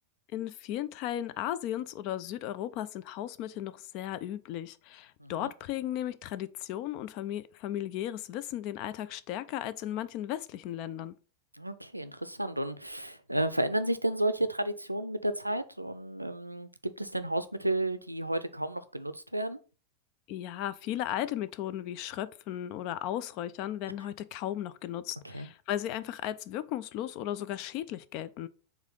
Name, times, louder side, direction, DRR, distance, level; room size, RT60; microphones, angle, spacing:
voice 1, 0.3-11.1 20.3-28.5, left 12 dB, 40° left, 0.4 m, -35 dB
voice 2, 5.2-5.5 11.6-19.6 25.2-25.5, right 1 dB, 85° right, 0.5 m, -32 dB
4.8 x 3.7 x 5.4 m
figure-of-eight pair, 90°, 0 cm